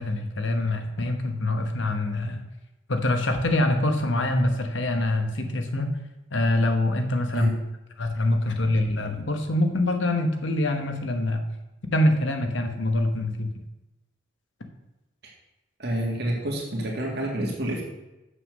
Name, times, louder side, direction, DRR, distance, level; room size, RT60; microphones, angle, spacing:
voice 1, 0.0-2.4 2.9-5.9 6.3-7.5 8.0-11.4 11.9-13.5, left 1 dB, 70° left, 5 dB, 1.1 m, -24 dB
voice 2, 15.8-17.8, right 1 dB, 55° right, -1 dB, 2.0 m, -28 dB
7.3 x 6.7 x 6.3 m, 0.98 s
head